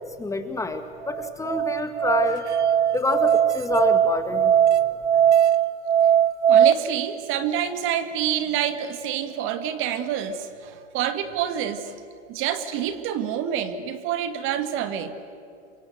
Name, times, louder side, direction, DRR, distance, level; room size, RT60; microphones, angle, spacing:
voice 1, 0.2-2.4 2.9-4.5, left 2 dB, 10° left, 7 dB, 1.7 m, -27 dB
Musical instrument, 1.0-6.7, right 9 dB, 85° right, 1.1 m, -19 dB
voice 2, 6.5-12.0 12.3-15.1, right 9 dB, 35° right, 9 dB, 2.1 m, -27 dB
28.5 x 24.5 x 8.0 m, 2.5 s
hypercardioid pair, 115°, 34 cm